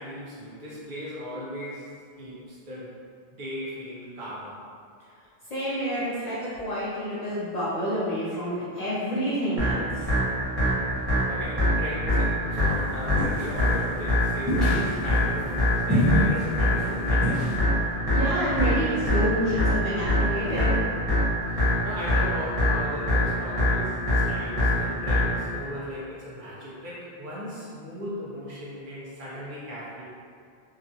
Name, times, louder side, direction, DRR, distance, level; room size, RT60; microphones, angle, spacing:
voice 1, 0.0-2.9 3.4-4.6 11.3-17.5 21.5-30.0, equal, 55° right, -7 dB, 0.8 m, -37 dB
voice 2, 5.5-10.1 18.1-20.8, equal, 50° left, -9 dB, 0.5 m, -28 dB
sound 1, 9.6-25.6, left 1 dB, 35° right, 1.0 m, -25 dB
sound 2, 13.2-13.7 14.5-15.3 15.9-16.4 16.7-16.9 17.2-17.6, equal, ahead, 0.9 m, -25 dB
2.8 x 2.4 x 2.6 m, 2.3 s
omnidirectional pair, 1.1 m